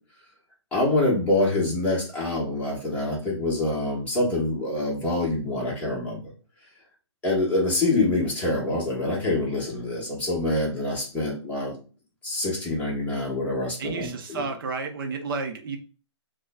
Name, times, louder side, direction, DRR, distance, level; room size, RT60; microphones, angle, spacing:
voice 1, 0.7-6.3 7.2-11.7 12.2-14.5, left 2 dB, 10° left, -5 dB, 1.2 m, -26 dB
voice 2, 13.8-15.8, right 4 dB, 50° right, 4 dB, 0.7 m, -31 dB
6.1 x 2.2 x 2.3 m, 0.37 s
hypercardioid pair, 140°, 15 cm